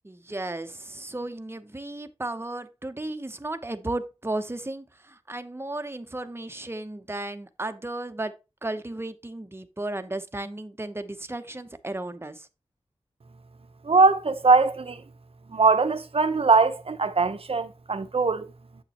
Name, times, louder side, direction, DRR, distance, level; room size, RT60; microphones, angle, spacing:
voice 1, 0.0-12.5, right 2 dB, 20° right, 0.9 m, -34 dB
voice 2, 13.8-15.0 15.5-18.5, right 4 dB, 60° right, 0.8 m, -21 dB
8.1 x 6.8 x 3.0 m
wide cardioid pair, 75°, 11 cm